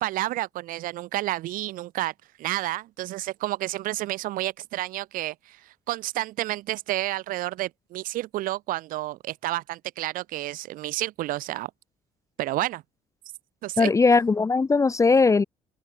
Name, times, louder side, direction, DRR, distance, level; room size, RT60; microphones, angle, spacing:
voice 1, 0.0-2.1 2.4-11.7 12.4-12.8 13.6-13.9, right 16 dB, 75° right, 2.8 m, -30 dB
voice 2, 13.8-15.4, left 4 dB, 20° left, 0.8 m, -19 dB
open air
cardioid pair, 95°, 14 cm